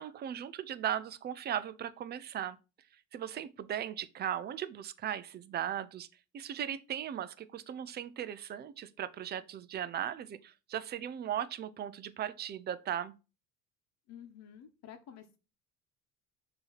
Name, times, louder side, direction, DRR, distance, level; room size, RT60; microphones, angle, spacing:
voice 1, 0.0-2.6 3.1-6.1 6.3-13.1, right 10 dB, 30° right, 0.5 m, -37 dB
voice 2, 14.1-15.4, left 9 dB, 55° left, 1.1 m, -51 dB
6.7 x 3.0 x 5.6 m
cardioid pair, 130°, 31 cm